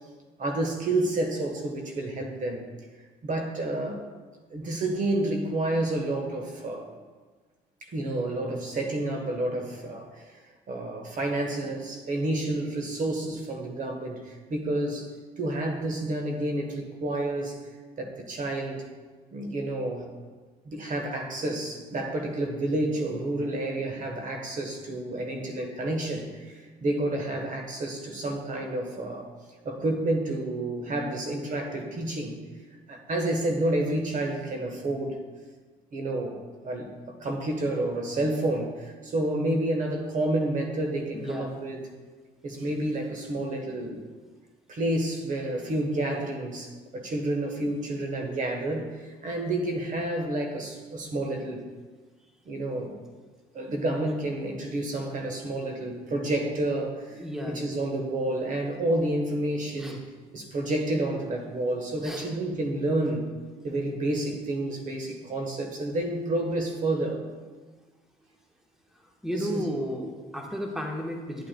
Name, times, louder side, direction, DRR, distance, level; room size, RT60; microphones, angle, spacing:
voice 1, 0.4-2.7 3.2-4.0 4.5-6.9 7.8-10.3 10.7-15.1 15.4-17.6 18.0-18.8 19.3-20.1 20.6-29.3 29.6-32.4 32.9-35.2 35.9-36.4 36.6-36.9 37.2-41.8 42.4-44.0 44.7-51.6 52.5-53.0 53.5-60.0 60.3-63.3 63.6-67.2 69.3-69.6, right 1 dB, 50° right, 3 dB, 1.2 m, -29 dB
voice 2, 41.1-41.5 57.1-57.6 59.8-60.0 62.0-62.3 69.2-71.5, equal, 5° right, 1 dB, 1.2 m, -33 dB
9.3 x 8.6 x 2.3 m, 1.4 s
supercardioid pair, 75°, 17 cm